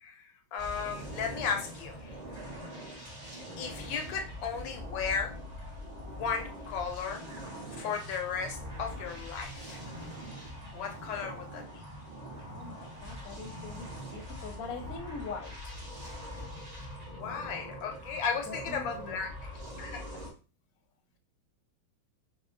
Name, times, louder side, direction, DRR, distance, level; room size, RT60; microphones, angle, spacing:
voice 1, 0.0-2.2 3.6-5.4 6.1-7.2 7.8-9.8 10.7-11.8 17.2-19.5 19.8-20.0, left 6 dB, 75° left, 1.3 m, -35 dB
sound 1, 0.6-20.3, equal, 30° right, 0.8 m, -43 dB
voice 2, 12.5-15.8 18.5-19.3, left 4 dB, 60° left, 1.0 m, -43 dB
4.3 x 2.2 x 3.7 m
omnidirectional pair, 2.3 m